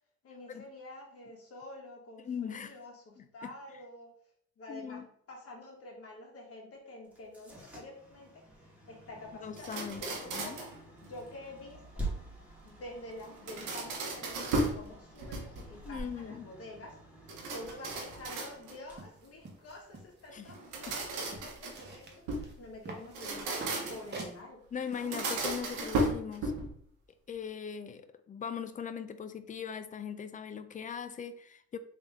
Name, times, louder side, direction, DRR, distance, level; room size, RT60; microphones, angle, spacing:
voice 1, 0.2-4.1 4.6-10.7 11.0-12.1 12.6-17.0 17.2-24.6, left 1 dB, 50° left, 1.4 m, -48 dB
voice 2, 2.2-2.7 3.2-3.5 4.7-5.1 9.4-10.0 10.3-10.6 15.8-16.4 20.3-20.5 24.7-26.5 27.3-31.8, left 7 dB, 25° left, 0.3 m, -40 dB
sound 1, 7.0-20.0, right 1 dB, 5° right, 1.4 m, -47 dB
sound 2, 9.6-10.8 13.2-14.8 15.2-15.8 17.3-18.9 20.5-22.5 23.0-24.2 24.9-26.8, right 2 dB, 90° right, 0.9 m, -35 dB
sound 3, 18.9-24.4, right 2 dB, 35° right, 1.0 m, -48 dB
3.4 x 2.7 x 3.5 m
cardioid pair, 90°, 30 cm